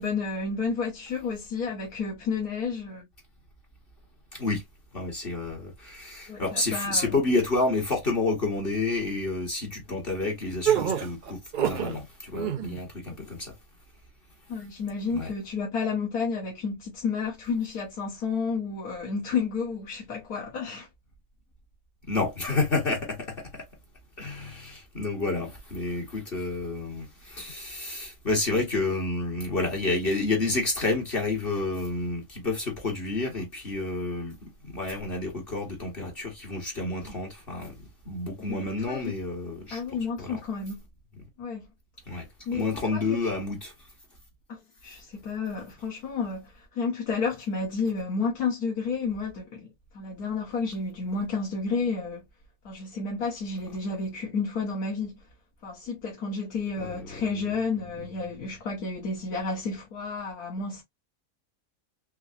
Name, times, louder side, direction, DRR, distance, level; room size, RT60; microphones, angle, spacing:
voice 1, 0.0-3.1 6.3-7.2 14.5-20.9 38.5-38.6 38.9-39.1 39.7-40.8 41.4-41.6 42.5-42.7 42.9-43.2 44.5-49.7 49.9-52.2 52.6-55.1 55.6-60.8, left 4 dB, 85° left, 1.7 m, -31 dB
voice 2, 4.3-4.6 4.9-13.5 15.1-15.3 22.1-23.6 24.2-37.8 38.0-39.8 40.2-40.4 42.1-42.3 42.5-43.7 56.8-57.2, left 3 dB, 40° left, 1.3 m, -29 dB
sound 1, 10.6-12.0 12.3-12.8, right 9 dB, 55° right, 0.5 m, -26 dB
3.8 x 3.3 x 2.4 m
omnidirectional pair, 1.6 m